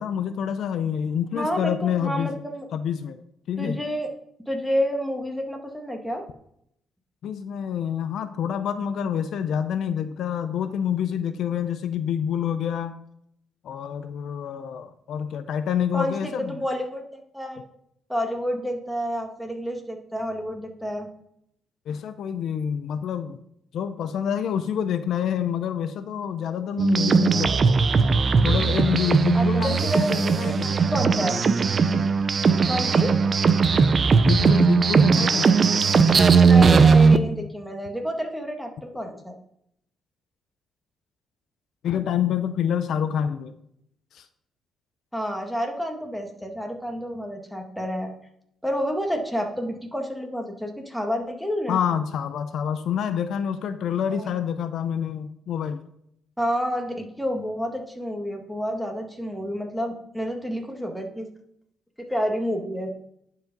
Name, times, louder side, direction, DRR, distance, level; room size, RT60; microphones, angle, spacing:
voice 1, 0.0-2.4 2.7-3.2 3.5-3.8 7.2-12.9 13.6-16.6 21.9-23.4 23.7-27.7 28.4-30.8 31.8-32.1 34.2-35.5 41.8-43.5 44.1-44.2 51.7-55.8, left 8 dB, 70° left, 11 dB, 0.6 m, -27 dB
voice 2, 1.3-2.7 3.6-4.1 4.5-6.2 15.9-17.6 18.1-21.1 29.3-31.4 32.7-33.1 36.4-39.4 45.1-48.1 48.6-51.8 54.1-54.3 56.4-61.3 62.1-62.9, equal, ahead, 2 dB, 1.8 m, -29 dB
sound 1, 26.8-37.2, right 5 dB, 40° right, 0.7 m, -18 dB
10.5 x 5.0 x 5.3 m, 0.74 s
cardioid pair, 90°, 0 cm